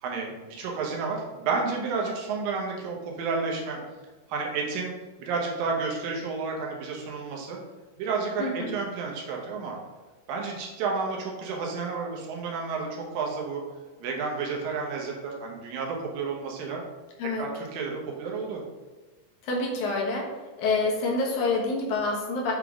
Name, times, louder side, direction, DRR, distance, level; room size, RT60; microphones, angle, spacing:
voice 1, 0.0-3.8 4.3-4.9 5.2-7.6 8.0-9.8 10.3-13.6 14.0-16.8 17.4-18.6, right 4 dB, 80° right, -1 dB, 2.8 m, -31 dB
voice 2, 8.4-8.7 17.2-17.5 19.4-20.3 20.6-22.5, left 3 dB, 65° left, -1 dB, 2.4 m, -27 dB
7.4 x 3.7 x 3.6 m, 1.2 s
omnidirectional pair, 4.0 m